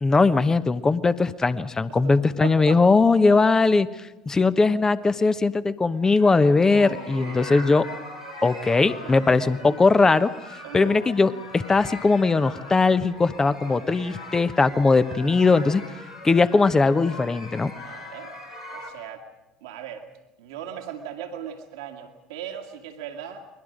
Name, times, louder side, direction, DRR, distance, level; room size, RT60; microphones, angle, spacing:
voice 1, 0.0-3.9 4.3-7.9 8.4-10.3 10.7-15.8 16.2-17.7, left 3 dB, 20° left, 14 dB, 1.1 m, -20 dB
voice 2, 2.0-2.8 3.3-3.4 6.5-7.6 9.0-9.4 9.7-9.8 10.6-11.0 13.6-13.9 17.7-18.3 18.7-19.2 19.6-20.1 20.4-23.5, right 9 dB, 70° right, 3 dB, 1.9 m, -38 dB
sound 1, 5.9-18.9, left 2 dB, 90° left, 4.3 m, -41 dB
29.5 x 22.0 x 5.1 m, 1.0 s
figure-of-eight pair, 65°, 3 cm